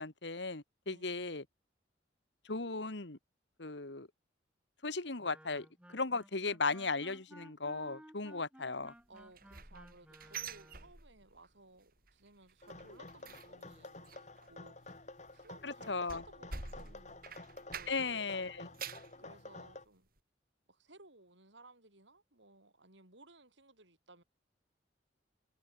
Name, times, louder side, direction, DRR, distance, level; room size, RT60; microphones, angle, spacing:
voice 1, 0.0-1.4 2.5-3.2 3.6-4.1 4.8-8.9 15.6-16.2 17.9-18.7, left 3 dB, 70° left, 2.0 m, -37 dB
voice 2, 0.8-1.3 9.1-15.0 15.3-17.4 17.7-18.8 19.2-20.1 20.7-24.2, right 2 dB, 75° right, 6.8 m, -60 dB
Wind instrument woodwind instrument, 5.2-10.9, equal, 5° right, 3.6 m, -57 dB
sound 1, 9.2-11.5 11.8-12.1 12.4-18.2 18.5-19.2 19.6-19.7 20.2-20.3, right 6 dB, 50° right, 7.0 m, -48 dB
sound 2, 12.6-19.9, left 2 dB, 40° left, 3.6 m, -51 dB
head